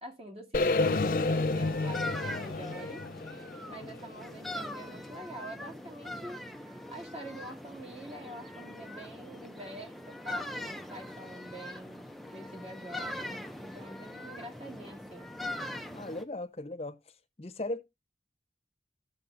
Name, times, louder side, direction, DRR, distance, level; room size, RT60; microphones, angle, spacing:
voice 1, 0.0-3.0 3.7-15.3, right 1 dB, 35° right, 2.3 m, -46 dB
sound 1, 0.5-4.6, left 3 dB, 50° left, 0.5 m, -30 dB
sound 2, 0.9-16.2, left 1 dB, ahead, 0.5 m, -42 dB
voice 2, 15.8-17.8, left 2 dB, 35° left, 0.9 m, -38 dB
13.5 x 6.6 x 2.6 m
head